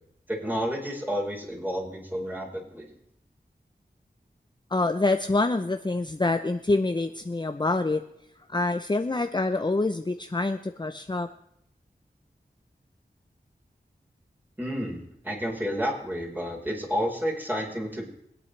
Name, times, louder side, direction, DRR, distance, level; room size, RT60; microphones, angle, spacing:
voice 1, 0.3-2.9 14.6-18.1, equal, 10° right, -3 dB, 4.3 m, -30 dB
voice 2, 4.7-8.0 8.5-11.3, left 2 dB, 25° left, 8 dB, 0.6 m, -26 dB
24.0 x 8.9 x 3.3 m, 0.76 s
wide cardioid pair, 45°, 17 cm